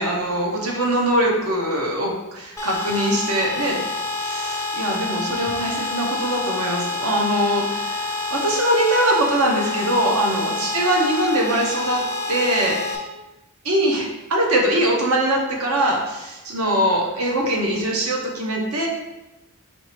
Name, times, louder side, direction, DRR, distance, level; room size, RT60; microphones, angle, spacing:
voice 1, 0.0-3.8 4.2-12.0 12.3-13.1 13.6-18.9, right 1 dB, 70° right, -1 dB, 1.0 m, -22 dB
sound 1, 2.6-13.0, left 2 dB, 15° left, 0.5 m, -28 dB
4.5 x 3.2 x 3.2 m, 0.99 s
head